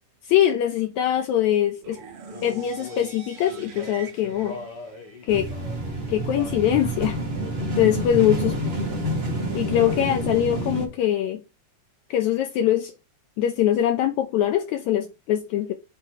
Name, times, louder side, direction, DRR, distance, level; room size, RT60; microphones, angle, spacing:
voice 1, 0.3-2.0 2.4-4.6 5.3-5.5 6.1-7.2 7.8-8.5 9.6-11.4 12.1-12.9 13.4-15.7, left 11 dB, 80° left, 1.8 m, -22 dB
sound 1, 1.8-5.8, right 4 dB, 50° right, 1.5 m, -44 dB
Male singing, 2.3-6.7 7.4-7.8 8.4-8.7 9.0-9.9, left 3 dB, 55° left, 1.2 m, -42 dB
sound 2, 5.3-10.9, right 1 dB, 75° right, 0.5 m, -28 dB
7.6 x 4.2 x 4.6 m
omnidirectional pair, 3.6 m